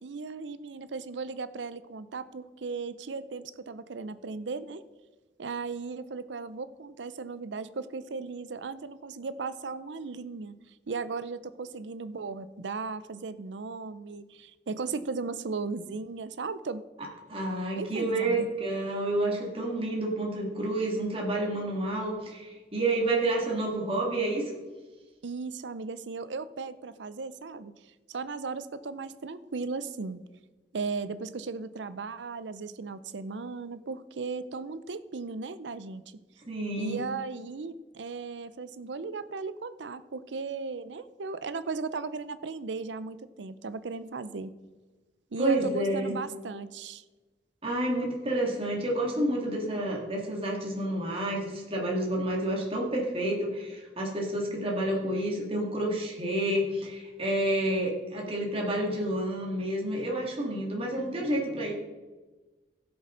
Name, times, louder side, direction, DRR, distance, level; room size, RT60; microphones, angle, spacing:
voice 1, 0.0-4.8 5.4-10.6 10.9-16.8 17.8-18.5 25.2-27.7 28.1-30.2 30.7-36.0 36.8-44.5 45.3-47.0, right 4 dB, 85° right, 14 dB, 0.6 m, -36 dB
voice 2, 17.3-24.5 36.5-37.1 45.4-46.1 47.6-61.7, right 1 dB, 30° right, -2 dB, 2.2 m, -29 dB
16.0 x 6.9 x 3.9 m, 1.2 s
head